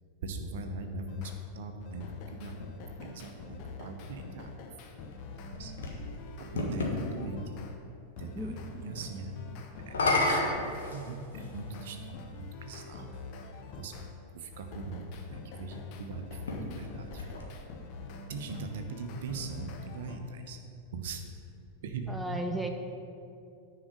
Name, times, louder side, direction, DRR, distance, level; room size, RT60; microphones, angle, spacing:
voice 1, 0.2-4.5 5.6-5.7 6.4-7.6 8.2-9.4 9.9-12.2 12.5-13.1 13.8-14.0 14.3-17.3 18.3-20.6 20.9-21.3 21.8-22.5, right 3 dB, 55° right, 5 dB, 0.9 m, -40 dB
sound 1, 1.1-1.4 1.8-7.8 8.2-14.1 14.5-20.2, left 3 dB, 40° left, 0.9 m, -45 dB
sound 2, 5.1-7.0 9.8-11.6 12.5-12.6 16.3-17.9, left 2 dB, 65° left, 1.5 m, -32 dB
voice 2, 8.4-8.9 22.1-22.7, right 1 dB, 5° right, 3 dB, 0.6 m, -35 dB
9.9 x 4.8 x 6.2 m, 2.6 s
figure-of-eight pair, 90°, 0 cm